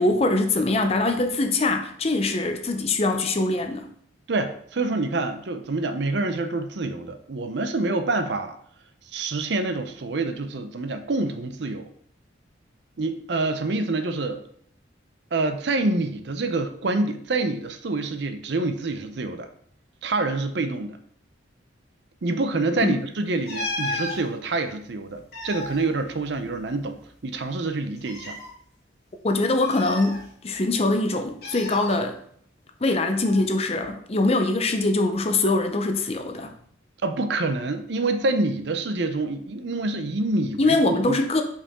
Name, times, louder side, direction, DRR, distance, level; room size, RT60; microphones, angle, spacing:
voice 1, 0.0-3.9 22.8-23.0 29.2-32.2 32.8-36.5 40.6-41.4, left 2 dB, 30° left, 6 dB, 0.6 m, -23 dB
voice 2, 4.3-8.6 9.1-11.9 13.0-14.4 15.3-19.5 20.0-21.0 22.2-28.4 37.0-41.2, right 2 dB, 60° right, 9 dB, 0.6 m, -27 dB
sound 1, 23.5-24.2 25.1-26.8 27.0-27.1 28.0-28.5 29.6-30.7 31.4-32.0 33.2-33.5, left 1 dB, 55° left, 2.1 m, -34 dB
5.4 x 4.8 x 3.6 m, 0.64 s
head